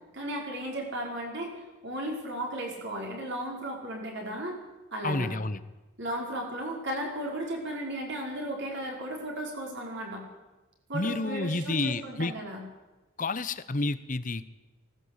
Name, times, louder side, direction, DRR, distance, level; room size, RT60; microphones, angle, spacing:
voice 1, 0.1-1.5 1.8-4.6 4.9-5.3 6.0-10.2 10.9-12.6, right 1 dB, 50° right, 0 dB, 5.3 m, -35 dB
voice 2, 5.0-5.6 10.9-12.3 13.2-14.5, left 2 dB, 35° left, 14 dB, 0.9 m, -30 dB
19.5 x 16.5 x 8.3 m, 1.1 s
head